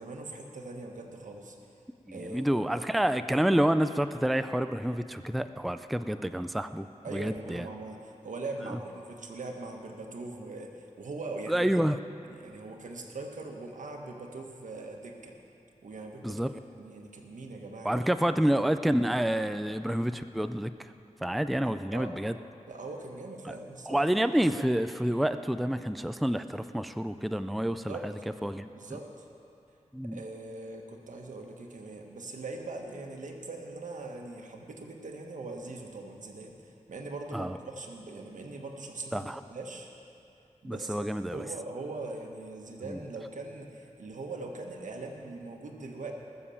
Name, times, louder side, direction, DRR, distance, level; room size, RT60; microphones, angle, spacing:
voice 1, 0.0-1.6 2.1-2.9 7.0-11.7 12.4-15.3 15.8-16.4 16.8-18.0 21.9-22.2 22.7-24.1 27.8-28.1 28.7-29.3 30.0-39.9 40.6-46.1, right 3 dB, 90° right, 2 dB, 1.5 m, -41 dB
voice 2, 2.1-6.9 7.1-7.7 11.5-12.0 16.2-16.6 17.8-20.9 21.2-22.4 23.4-23.5 23.9-28.1 28.4-29.0 29.9-30.2 37.3-37.6 39.1-39.4 40.6-41.5 42.9-43.0, right 1 dB, ahead, 10 dB, 0.4 m, -28 dB
19.5 x 7.1 x 7.1 m, 2.6 s
wide cardioid pair, 90°, 13 cm